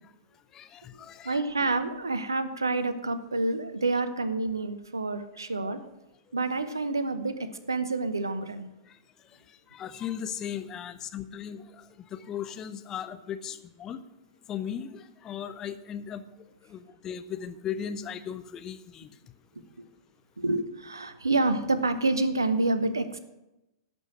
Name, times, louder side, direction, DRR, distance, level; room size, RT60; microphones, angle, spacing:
voice 1, 0.5-1.4 5.6-5.7 8.9-9.0 9.7-14.0 14.5-16.2 16.7-19.1, left 8 dB, 25° left, 11 dB, 0.6 m, -37 dB
voice 2, 1.2-5.8 6.3-8.7 19.8-19.9 20.4-23.2, right 2 dB, 75° right, 12 dB, 0.8 m, -28 dB
11.5 x 5.4 x 8.1 m, 0.94 s
figure-of-eight pair, 100°, 2 cm